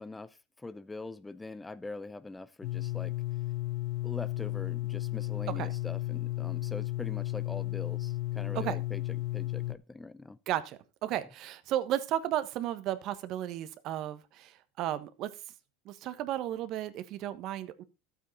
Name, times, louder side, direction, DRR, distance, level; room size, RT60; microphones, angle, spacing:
voice 1, 0.0-3.1 4.0-10.4 11.1-11.2, left 2 dB, 10° left, 0.6 m, -43 dB
sound 1, 2.6-9.7, left 17 dB, 60° left, 0.8 m, -34 dB
voice 2, 10.5-15.3 15.8-17.8, right 12 dB, 50° right, 1.2 m, -34 dB
12.5 x 8.4 x 4.1 m
hypercardioid pair, 100°, 0 cm